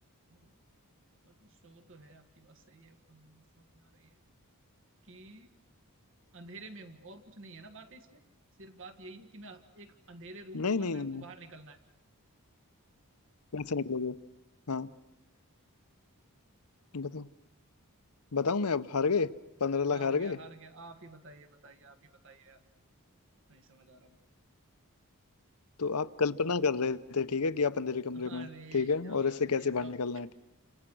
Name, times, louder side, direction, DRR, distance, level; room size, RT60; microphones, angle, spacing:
voice 1, 1.2-4.2 5.0-5.5 6.3-8.2 8.6-11.8 19.9-22.0 22.2-22.6 23.5-24.2 28.1-29.9, right 2 dB, 60° right, 8 dB, 1.7 m, -51 dB
voice 2, 10.5-11.2 13.5-14.1 14.7-14.9 16.9-17.3 18.3-19.3 19.6-20.4 25.8-28.5 28.7-30.3, left 4 dB, 90° left, 14 dB, 0.9 m, -30 dB
29.5 x 26.5 x 6.3 m, 0.91 s
head